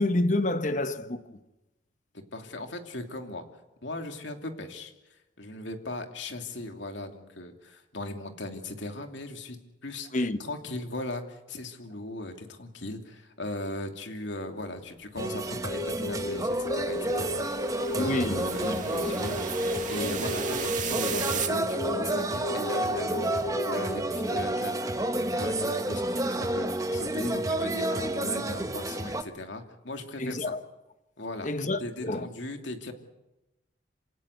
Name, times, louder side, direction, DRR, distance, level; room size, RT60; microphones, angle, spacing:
voice 1, 0.0-1.4 10.1-10.4 17.9-18.5 30.2-30.6 31.4-32.3, left 1 dB, 40° left, 1.1 m, -28 dB
voice 2, 2.1-3.4 3.8-4.9 5.4-9.6 9.8-23.3 23.6-25.0 25.3-30.6 31.2-31.5 31.8-32.9, left 2 dB, 75° left, 2.7 m, -38 dB
sound 1, 15.2-29.2, right 1 dB, 15° right, 0.9 m, -30 dB
sound 2, 15.5-21.5, right 7 dB, 40° right, 2.1 m, -37 dB
sound 3, 15.6-24.4, left 2 dB, 90° left, 0.8 m, -36 dB
27.5 x 17.0 x 8.1 m
head